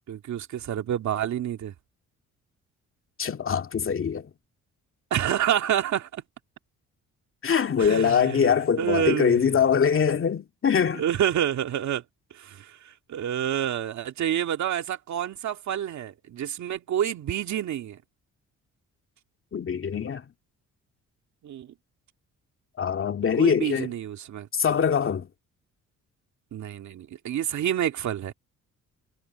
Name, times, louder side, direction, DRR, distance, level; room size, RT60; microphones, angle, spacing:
voice 1, 0.1-1.7 5.1-6.2 7.8-8.5 8.8-9.5 10.9-12.0 12.3-18.0 21.4-21.7 23.3-24.5 26.5-28.3, right 10 dB, 70° right, 2.4 m, -28 dB
voice 2, 3.2-4.3 7.4-11.0 19.5-20.3 22.8-23.9 24.5-25.3, left 7 dB, 45° left, 2.3 m, -23 dB
cardioid pair, 90°, 30 cm